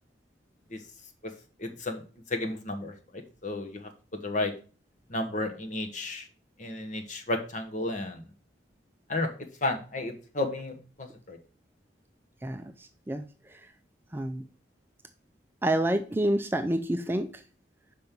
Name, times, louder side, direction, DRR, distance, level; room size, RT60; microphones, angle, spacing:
voice 1, 1.6-2.0 2.3-4.5 5.1-6.3 6.6-8.2 9.1-9.3 9.6-11.4, left 2 dB, 40° left, 5 dB, 1.2 m, -33 dB
voice 2, 14.1-14.4 15.6-17.3, right 1 dB, 10° right, 7 dB, 0.4 m, -27 dB
5.3 x 5.3 x 5.9 m, 0.38 s
head